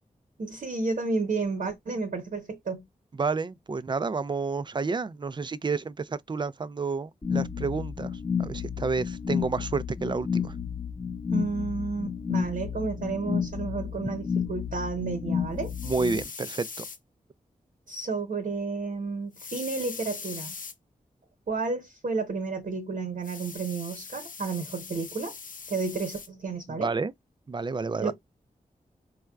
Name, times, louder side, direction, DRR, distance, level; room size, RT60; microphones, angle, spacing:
voice 1, 0.4-2.8 11.3-15.7 17.9-20.6 21.5-25.3 25.7-26.9 28.0-28.1, right 4 dB, 70° right, 1.0 m, -31 dB
voice 2, 3.2-10.6 15.8-16.9 26.7-27.1 27.5-28.1, right 4 dB, 30° right, 0.4 m, -30 dB
sound 1, 7.2-16.2, left 7 dB, 30° left, 0.9 m, -31 dB
sound 2, 15.6-17.0 19.3-20.7 23.2-26.3, left 5 dB, 65° left, 0.7 m, -41 dB
4.1 x 2.3 x 2.3 m
cardioid pair, 60°, 15 cm